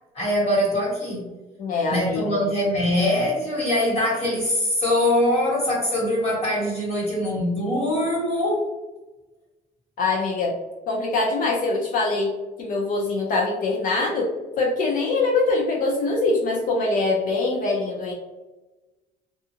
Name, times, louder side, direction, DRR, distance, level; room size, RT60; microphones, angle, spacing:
voice 1, 0.1-1.3 1.9-8.7, left 1 dB, 40° left, -6 dB, 1.2 m, -23 dB
voice 2, 1.6-2.4 10.0-10.5 10.9-12.3 12.6-14.3 14.6-18.1, left 3 dB, 55° left, -2 dB, 0.6 m, -23 dB
2.7 x 2.3 x 2.7 m, 1.1 s
cardioid pair, 110°, 17 cm